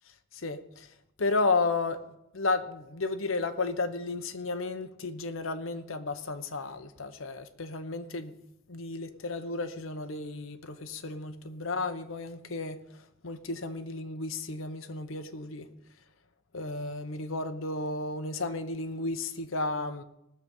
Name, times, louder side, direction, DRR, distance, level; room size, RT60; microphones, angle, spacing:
voice 1, 0.3-0.9 1.2-2.0 2.3-8.3 8.7-12.8 13.2-15.7 16.5-20.0, left 3 dB, 80° left, 1.0 m, -33 dB
19.0 x 7.0 x 5.4 m
head